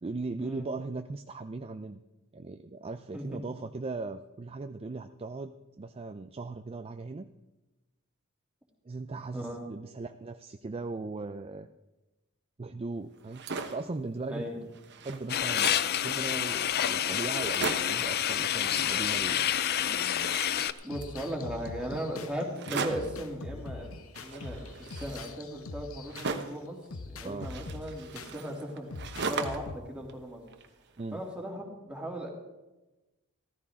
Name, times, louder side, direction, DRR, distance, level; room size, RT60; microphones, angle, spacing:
voice 1, 0.0-2.0 2.3-7.3 8.8-11.7 12.6-14.4 15.0-15.8 16.0-19.5 27.2-27.5 31.0-31.2, right 3 dB, 25° right, 9 dB, 0.4 m, -38 dB
sound 1, 13.2-13.9 14.4-14.5 14.7-15.9 16.6-16.7 16.9-17.0 17.3-18.1 18.8-19.6 19.8-21.2 22.5-23.2 24.1-26.7 27.4-29.8 30.1-31.0, right 4 dB, 55° right, 1.1 m, -38 dB
voice 2, 14.3-14.6 20.8-26.8 27.1-28.9 29.3-30.4 31.1-32.3, equal, 5° right, -2 dB, 2.6 m, -37 dB
sound 2, 15.3-20.7, left 10 dB, 45° left, 0.5 m, -28 dB
sound 3, 20.6-26.4 26.9-28.3 28.9-29.8, left 3 dB, 65° left, 0.9 m, -43 dB
15.0 x 14.5 x 3.6 m, 1.1 s
head